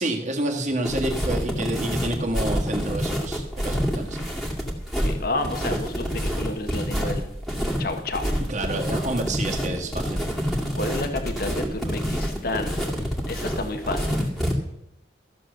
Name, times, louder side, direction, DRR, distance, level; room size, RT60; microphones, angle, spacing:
voice 1, 0.0-4.2 8.5-10.5, right 1 dB, 40° right, 2 dB, 1.9 m, -29 dB
sound 1, 0.8-14.5, equal, ahead, 2.1 m, -27 dB
voice 2, 5.0-7.2 7.8-8.3 10.8-14.2, left 2 dB, 55° left, 7 dB, 1.3 m, -30 dB
14.0 x 7.2 x 6.6 m, 0.83 s
head